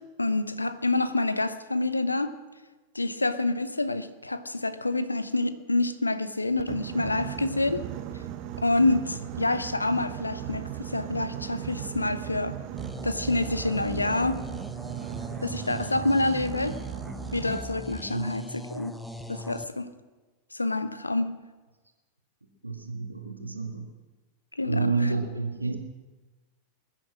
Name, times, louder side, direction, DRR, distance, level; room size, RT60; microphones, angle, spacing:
voice 1, 0.2-2.3 2.9-7.8 8.6-12.5 13.0-14.4 15.4-16.7 17.3-18.9 19.3-19.9 20.5-21.4 24.6-25.1, left 2 dB, 80° left, 13 dB, 0.9 m, -27 dB
Boat Water vehicle, 6.6-17.6, right 12 dB, 40° right, 1.1 m, -37 dB
sound 1, 12.8-19.7, equal, 5° left, 1.0 m, -40 dB
voice 2, 22.6-23.9 24.6-25.8, right 4 dB, 85° right, 4 dB, 2.1 m, -29 dB
21.5 x 10.0 x 6.2 m, 1.2 s
figure-of-eight pair, 90°, 0 cm